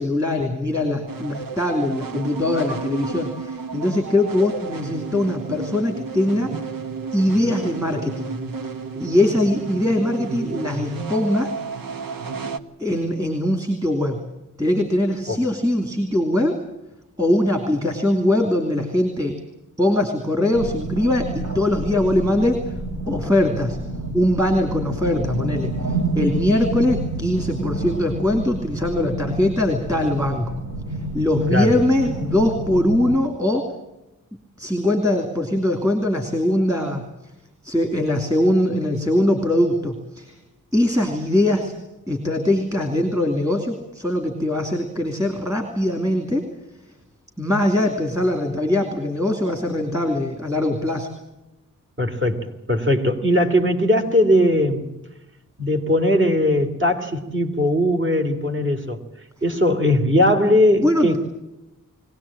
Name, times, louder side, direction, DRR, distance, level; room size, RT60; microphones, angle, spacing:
voice 1, 0.0-6.5 7.1-8.4 9.0-11.6 12.8-14.2 14.6-16.6 17.2-19.3 19.8-22.7 23.1-23.8 24.1-30.5 31.1-33.7 34.6-37.0 37.6-40.3 40.7-41.7 42.1-46.4 47.4-51.1 60.8-61.2, left 1 dB, 10° right, 4 dB, 2.9 m, -21 dB
sound 1, 1.1-12.6, right 5 dB, 85° right, 1.4 m, -32 dB
sound 2, 20.5-33.2, right 2 dB, 60° right, 4.1 m, -29 dB
voice 2, 52.0-54.9 55.6-59.0 59.4-61.2, left 1 dB, 35° right, 3 dB, 3.2 m, -19 dB
22.5 x 18.0 x 8.8 m, 0.96 s
wide cardioid pair, 130°, 33 cm